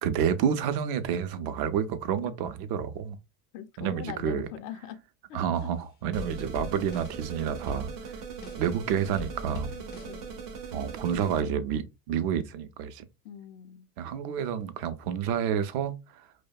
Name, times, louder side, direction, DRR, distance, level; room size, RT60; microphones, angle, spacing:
voice 1, 0.0-3.2 3.8-4.5 5.3-8.2 8.6-9.8 10.7-13.0 14.0-16.3, right 8 dB, 55° right, 0.5 m, -29 dB
voice 2, 3.5-5.0 5.3-5.7 10.1-10.5 13.2-13.9, left 9 dB, 75° left, 0.5 m, -42 dB
sound 1, 5.5-5.8 6.2-8.8 9.2-10.6, left 4 dB, 25° left, 0.3 m, -43 dB
sound 2, 6.1-11.4, right 6 dB, 85° right, 0.8 m, -40 dB
2.7 x 2.1 x 2.3 m
hypercardioid pair, 90°, 48 cm